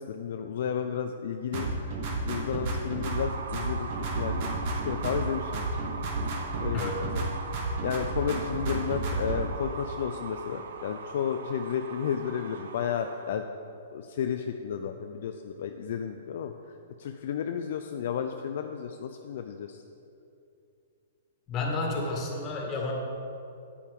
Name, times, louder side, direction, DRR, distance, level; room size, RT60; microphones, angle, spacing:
voice 1, 0.0-1.8 2.2-5.7 6.6-7.3 7.8-13.4 13.9-16.5 17.0-19.8, left 7 dB, 60° left, 6 dB, 0.4 m, -32 dB
sound 1, 1.5-3.3 3.5-5.3 5.5-7.3 7.5-9.4, right 3 dB, 50° right, 1.7 m, -31 dB
sound 2, 3.0-13.4, right 5 dB, 70° right, 0.7 m, -41 dB
voice 2, 6.7-7.1 21.5-22.9, left 2 dB, 30° left, -1 dB, 2.1 m, -31 dB
9.1 x 8.5 x 3.7 m, 2.6 s
hypercardioid pair, 125°, 0 cm